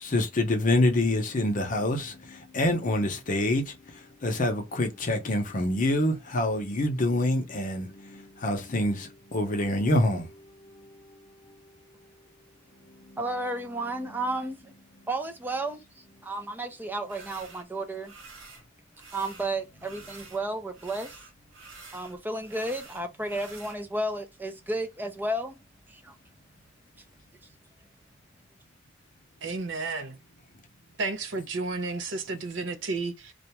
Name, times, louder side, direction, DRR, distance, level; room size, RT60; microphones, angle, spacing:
voice 1, 0.0-11.7 12.9-13.3 13.8-14.2, left 1 dB, 40° left, 0.7 m, -27 dB
voice 2, 13.2-14.7 15.1-18.1 19.1-21.2 21.9-25.6 25.9-26.1, right 1 dB, 10° right, 0.4 m, -32 dB
sound 1, 17.1-17.6 18.0-18.6 18.9-20.4 20.7-23.8, right 4 dB, 90° right, 1.0 m, -48 dB
voice 3, 29.4-30.2 31.0-33.3, right 3 dB, 70° right, 0.6 m, -32 dB
2.5 x 2.2 x 2.9 m
head